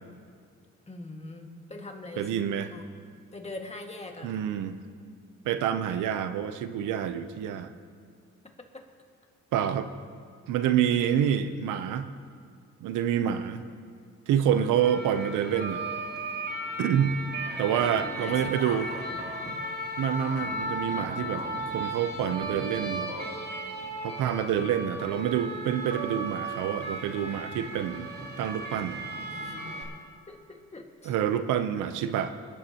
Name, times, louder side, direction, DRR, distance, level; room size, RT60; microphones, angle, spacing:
voice 1, 0.9-2.9 3.3-4.4 8.7-8.8 14.5-14.7 17.7-19.0 29.3-29.6 30.3-31.2, left 2 dB, 20° left, 2 dB, 1.8 m, -42 dB
voice 2, 2.2-2.7 4.2-4.8 5.4-7.7 9.5-9.9 10.5-12.1 12.8-13.7 14.3-15.8 16.8-17.2 17.6-18.9 20.0-21.4 21.7-23.1 24.0-28.1 28.4-29.0 31.1-32.3, right 9 dB, 90° right, 10 dB, 0.8 m, -27 dB
sound 1, 14.8-29.8, right 1 dB, 35° right, 2.7 m, -35 dB
26.5 x 11.0 x 2.9 m, 2.3 s
cardioid pair, 90°, 30 cm